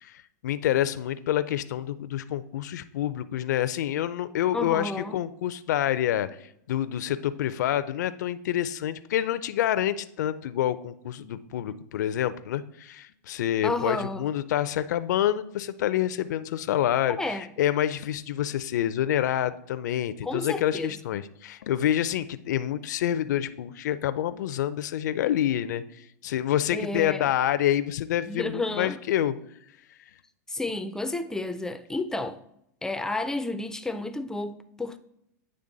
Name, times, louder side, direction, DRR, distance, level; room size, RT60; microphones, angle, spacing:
voice 1, 0.0-29.3, left 11 dB, 75° left, 0.4 m, -27 dB
voice 2, 4.5-5.2 13.6-14.3 17.2-17.5 20.2-21.0 26.7-27.3 28.3-29.0 30.5-32.4 32.8-35.0, left 2 dB, 5° left, 0.3 m, -31 dB
8.8 x 3.3 x 3.8 m
hypercardioid pair, 125°, 10 cm